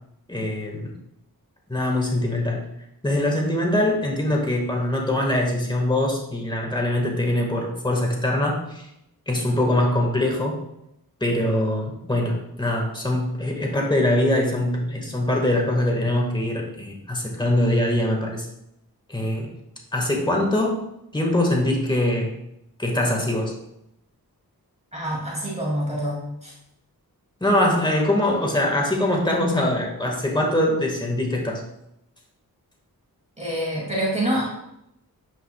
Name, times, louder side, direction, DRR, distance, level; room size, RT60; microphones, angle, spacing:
voice 1, 0.3-0.9 1.7-2.7 3.0-8.9 9.3-10.6 11.2-18.5 19.1-19.5 19.9-20.7 21.1-22.3 22.8-23.5 27.4-31.6, left 1 dB, 10° left, -1 dB, 1.6 m, -23 dB
voice 2, 24.9-26.5 33.4-34.4, right 1 dB, 20° right, -5 dB, 2.4 m, -26 dB
9.3 x 5.3 x 2.3 m, 0.81 s
wide cardioid pair, 65°, 37 cm